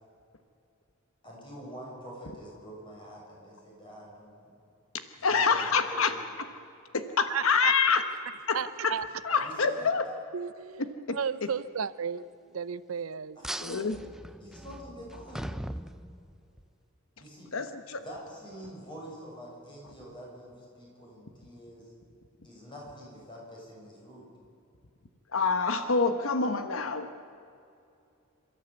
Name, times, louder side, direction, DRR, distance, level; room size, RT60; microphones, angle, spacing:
voice 1, 1.2-4.4 5.2-6.2 9.4-9.9 13.4-13.9 14.4-15.6 17.2-17.5 18.0-21.9 22.4-24.3, equal, 25° left, 7.2 m, -46 dB
voice 2, 5.2-6.1 6.9-8.0 8.5-8.6 8.8-8.9 9.2-10.0 11.4-11.5 13.6-14.0 17.5-18.0 25.3-27.1, left 5 dB, 80° left, 1.2 m, -26 dB
voice 3, 7.3-7.7 8.5-9.0 10.3-10.7 11.1-12.2 12.5-13.4, right 7 dB, 90° right, 0.6 m, -33 dB
sound 1, 13.4-16.6, equal, ahead, 0.5 m, -40 dB
27.5 x 13.5 x 8.2 m
head